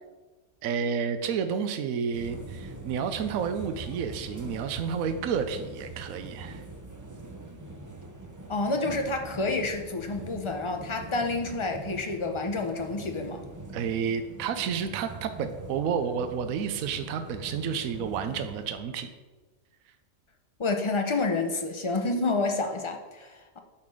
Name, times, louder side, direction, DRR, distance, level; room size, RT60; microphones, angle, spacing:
voice 1, 0.6-6.6 13.7-19.1, right 6 dB, 75° right, 8 dB, 1.0 m, -30 dB
sound 1, 2.1-18.8, right 2 dB, 30° right, 0.3 m, -43 dB
voice 2, 8.5-13.4 20.6-23.6, left 3 dB, 45° left, 4 dB, 0.3 m, -29 dB
8.7 x 4.2 x 6.3 m, 1.3 s
omnidirectional pair, 1.5 m